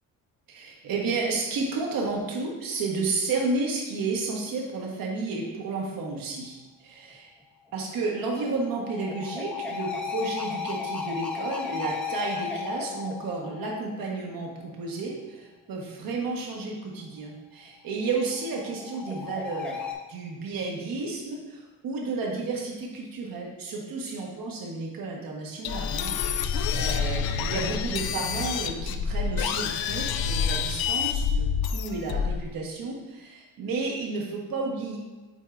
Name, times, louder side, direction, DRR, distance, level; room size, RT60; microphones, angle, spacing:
voice 1, 0.5-7.3 7.7-19.8 20.1-26.1 26.7-35.0, right 3 dB, 65° right, -1 dB, 1.4 m, -32 dB
sound 1, 7.7-14.3 17.7-19.9, left 6 dB, 5° left, 0.6 m, -35 dB
sound 2, 25.6-32.4, left 6 dB, 75° left, 0.5 m, -27 dB
8.1 x 4.6 x 2.6 m, 1.2 s
cardioid pair, 155°, 36 cm